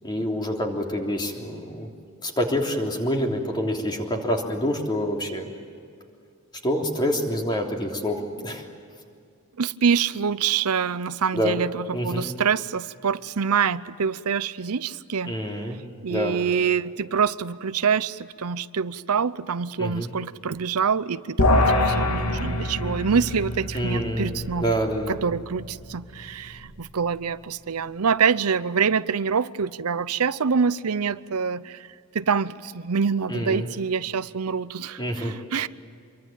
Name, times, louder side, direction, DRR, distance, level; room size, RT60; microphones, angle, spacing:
voice 1, 0.0-1.9 2.2-5.5 6.6-8.6 11.3-11.6 11.9-12.3 15.2-15.8 16.1-16.4 19.8-20.1 23.7-24.3 24.6-25.1 33.3-33.7 35.0-35.3, equal, 20° left, 1 dB, 3.4 m, -27 dB
voice 2, 9.6-15.4 16.0-24.7 25.1-31.9 32.1-35.7, right 6 dB, 85° right, 16 dB, 0.7 m, -25 dB
sound 1, 21.4-26.9, left 1 dB, 85° left, 2.7 m, -26 dB
26.5 x 23.5 x 9.1 m, 2.3 s
head